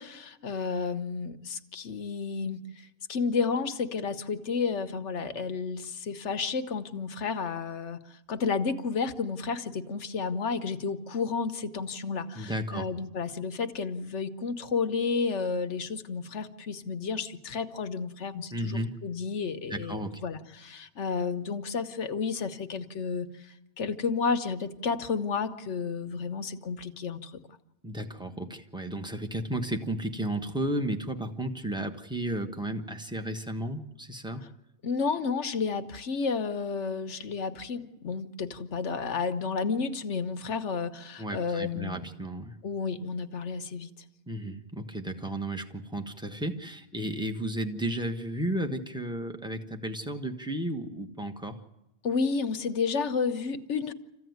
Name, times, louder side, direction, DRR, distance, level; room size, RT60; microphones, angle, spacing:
voice 1, 0.0-27.3 34.8-42.0 42.6-43.9 52.0-53.9, left 5 dB, 65° left, 9 dB, 1.3 m, -31 dB
voice 2, 12.3-12.8 18.5-19.0 19.7-20.2 27.8-34.4 41.2-42.6 44.3-51.6, right 1 dB, 5° right, 5 dB, 1.2 m, -33 dB
27.0 x 15.0 x 9.4 m, 0.97 s
omnidirectional pair, 1.3 m